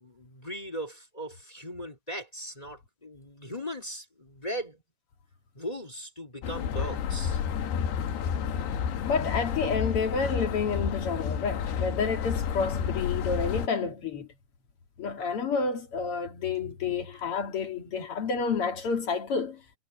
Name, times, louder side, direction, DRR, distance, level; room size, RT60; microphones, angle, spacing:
voice 1, 0.0-4.8 5.5-7.4, equal, 15° left, 1.6 m, -38 dB
sound 1, 6.4-13.7, left 7 dB, 90° left, 4.0 m, -30 dB
voice 2, 9.1-14.3 15.0-19.6, left 5 dB, 45° left, 2.2 m, -29 dB
omnidirectional pair, 4.7 m